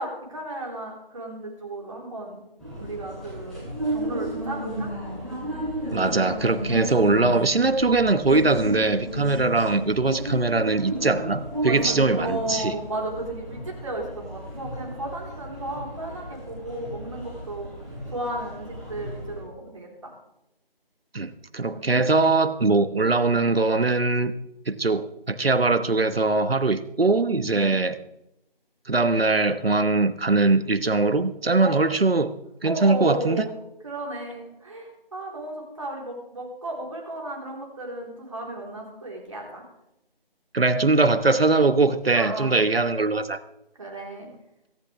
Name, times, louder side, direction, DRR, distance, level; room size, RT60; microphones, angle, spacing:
voice 1, 0.0-2.4 2.8-3.6 3.9-4.9 11.6-17.7 18.1-20.1 21.6-22.3 27.5-27.8 31.6-31.8 32.6-33.5 33.8-39.6 42.1-42.5 43.8-44.3, right 1 dB, 35° right, -1 dB, 3.9 m, -34 dB
sound 1, 2.6-19.4, right 1 dB, ahead, 2.4 m, -34 dB
voice 2, 5.9-12.7 21.1-24.3 24.7-28.0 28.9-32.4 32.6-33.5 40.5-43.4, right 3 dB, 80° right, 12 dB, 1.3 m, -21 dB
23.5 x 10.5 x 3.4 m, 0.85 s
figure-of-eight pair, 170°, 29 cm